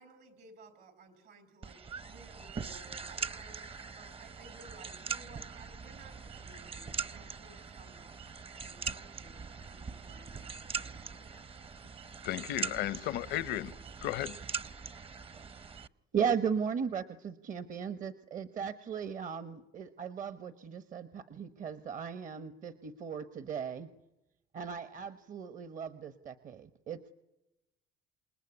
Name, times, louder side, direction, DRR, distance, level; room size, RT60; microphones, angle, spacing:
voice 1, 0.0-8.3 8.6-11.4, right 3 dB, 70° right, 5.2 m, -57 dB
sound 1, 1.6-15.9, right 5 dB, 35° right, 0.9 m, -42 dB
voice 2, 12.2-13.7 14.0-14.4, left 13 dB, 85° left, 0.9 m, -34 dB
voice 3, 16.1-23.9 24.5-27.0, right 7 dB, 50° right, 1.2 m, -36 dB
28.0 x 20.0 x 9.8 m
cardioid pair, 110°, 17 cm